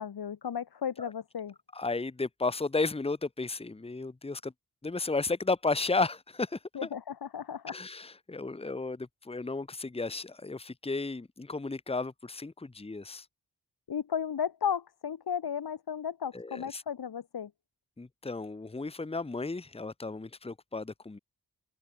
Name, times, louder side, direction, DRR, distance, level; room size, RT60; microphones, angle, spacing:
voice 1, 0.0-1.5 6.7-7.8 13.9-17.5, left 8 dB, 75° left, 3.9 m, -34 dB
voice 2, 1.7-4.5 4.8-6.9 7.7-13.2 16.3-16.8 18.0-21.2, left 3 dB, 15° left, 1.4 m, -33 dB
wide cardioid pair, 170°, 38 cm